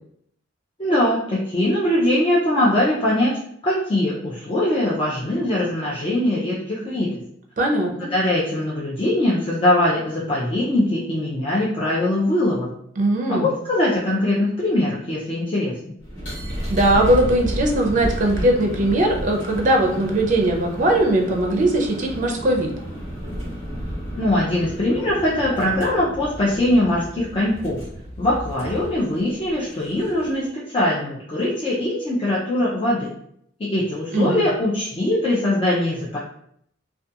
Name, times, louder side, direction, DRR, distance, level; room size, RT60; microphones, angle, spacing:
voice 1, 0.8-7.2 8.1-12.7 13.3-15.7 24.2-27.8 28.2-33.1 33.6-36.2, left 1 dB, 30° left, -7 dB, 0.4 m, -21 dB
voice 2, 7.6-8.1 13.0-13.5 16.7-22.7 34.1-34.4, right 1 dB, 40° right, 2 dB, 0.4 m, -20 dB
sound 1, 16.0-30.4, equal, 70° left, 1.1 m, -32 dB
2.3 x 2.2 x 2.7 m, 0.69 s
head